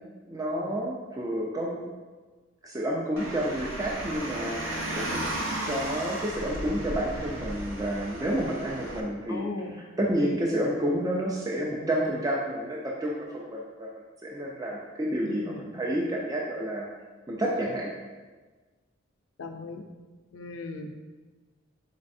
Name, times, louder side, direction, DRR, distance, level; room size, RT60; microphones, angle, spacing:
voice 1, 0.3-1.8 2.6-5.2 5.7-9.5 10.0-13.9 14.2-16.9 17.3-17.9, right 1 dB, 15° right, -3 dB, 0.3 m, -30 dB
Car, 3.2-9.0, right 1 dB, 75° right, 0.5 m, -34 dB
voice 2, 9.3-9.8 15.3-15.8 19.4-19.8 20.3-20.9, left 2 dB, 75° left, 4 dB, 0.4 m, -37 dB
4.1 x 4.0 x 2.6 m, 1.3 s
head